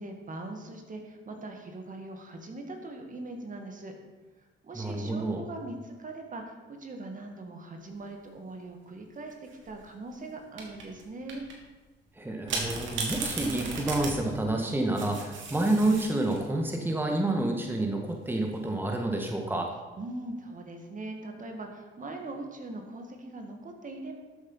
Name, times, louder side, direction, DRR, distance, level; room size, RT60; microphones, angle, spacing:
voice 1, 0.0-3.9 4.6-11.4 20.0-24.2, right 2 dB, 40° right, 3 dB, 2.1 m, -41 dB
voice 2, 4.7-5.4 12.1-19.7, right 2 dB, 10° right, 2 dB, 1.6 m, -29 dB
sound 1, 9.3-9.7 10.6-11.0 11.3-11.5 12.5-16.5 18.1-18.6, right 3 dB, 75° right, 2.9 m, -35 dB
12.5 x 7.5 x 5.7 m, 1.2 s
cardioid pair, 90°, 20 cm